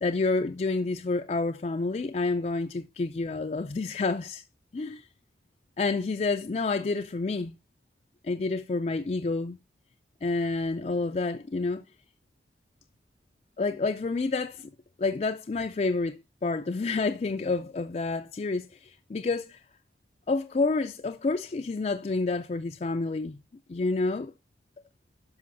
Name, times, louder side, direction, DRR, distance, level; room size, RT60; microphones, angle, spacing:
voice 1, 0.0-4.4 4.7-5.0 5.8-7.5 8.2-9.6 10.2-11.8 13.6-14.7 15.0-19.6 20.3-23.4 23.7-24.3, left 3 dB, 40° left, 0.4 m, -29 dB
12.5 x 5.5 x 2.6 m
head